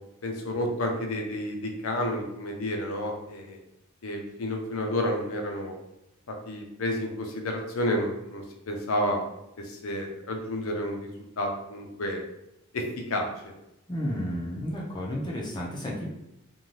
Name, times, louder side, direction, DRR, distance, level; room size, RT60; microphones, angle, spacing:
voice 1, 0.2-3.6 4.0-5.7 6.5-9.2 9.6-11.1 11.4-12.2 12.7-13.5, left 1 dB, 85° left, 2 dB, 0.6 m, -30 dB
voice 2, 13.9-16.0, equal, 20° left, -4 dB, 0.5 m, -32 dB
2.6 x 2.2 x 3.1 m, 0.87 s
head